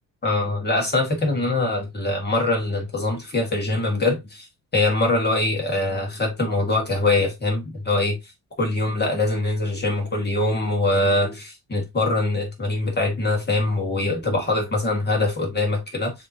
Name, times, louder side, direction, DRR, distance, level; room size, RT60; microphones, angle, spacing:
voice 1, 0.2-4.5 4.7-8.2 8.6-16.1, left 2 dB, 25° left, 1.6 m, -23 dB
6.7 x 2.9 x 2.7 m
cardioid pair, 145°, 40 cm